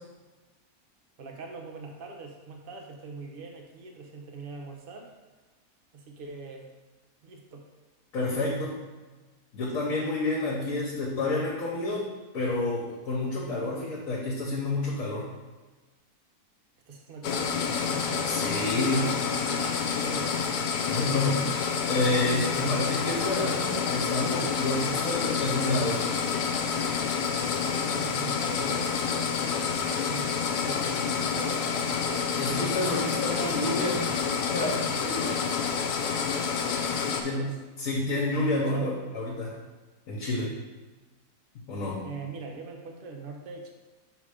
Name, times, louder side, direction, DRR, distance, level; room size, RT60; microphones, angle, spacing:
voice 1, 1.2-5.1 5.9-6.7 7.2-7.7 8.3-8.5 16.9-20.4 27.6-32.4 33.3-34.0 37.1-37.6 38.6-38.9 42.0-43.7, right 4 dB, 45° right, 2 dB, 0.8 m, -42 dB
voice 2, 8.1-8.7 9.5-12.1 12.3-15.3 18.2-19.1 20.9-21.5 21.8-26.1 32.4-34.0 34.5-35.4 37.2-37.5 37.8-39.5 40.1-40.5 41.7-42.0, left 2 dB, 65° left, -5 dB, 1.4 m, -29 dB
sound 1, 17.2-37.2, left 6 dB, 85° left, 1.2 m, -28 dB
5.6 x 3.5 x 4.9 m, 1.2 s
omnidirectional pair, 1.6 m